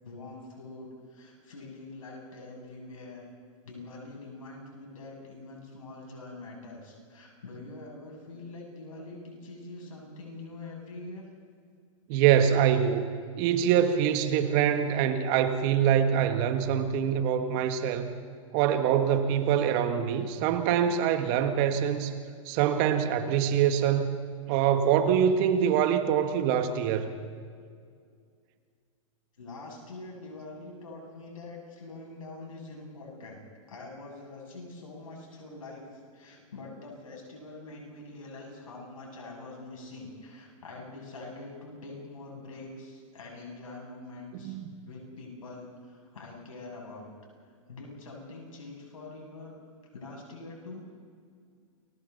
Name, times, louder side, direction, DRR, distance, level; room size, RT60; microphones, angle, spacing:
voice 1, 0.0-3.2 3.6-11.2 29.4-33.4 33.7-44.6 44.9-47.1 47.7-49.6 49.9-50.8, left 2 dB, 85° left, -1 dB, 7.6 m, -44 dB
voice 2, 12.1-13.1 13.4-18.1 18.5-22.1 22.5-24.2 24.5-27.2 44.4-44.7, right 9 dB, 45° right, 8 dB, 1.8 m, -24 dB
29.0 x 23.0 x 4.2 m, 2.1 s
hypercardioid pair, 115°, 17 cm